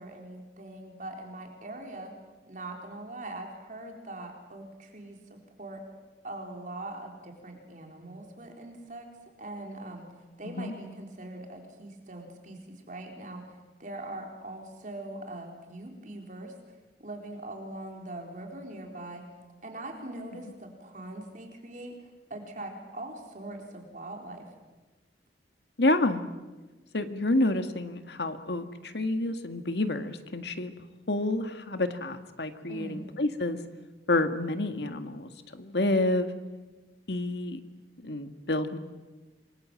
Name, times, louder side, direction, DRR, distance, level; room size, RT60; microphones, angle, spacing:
voice 1, 0.0-2.1 2.5-5.8 6.2-9.1 9.4-16.5 17.0-19.2 19.6-24.5 32.7-33.0, right 1 dB, 45° right, 2 dB, 4.1 m, -42 dB
voice 2, 25.8-26.2 26.9-30.7 31.1-33.6 34.1-36.3 37.1-37.6 38.0-38.8, left 2 dB, 70° left, 8 dB, 1.8 m, -29 dB
27.0 x 22.5 x 7.8 m, 1.2 s
head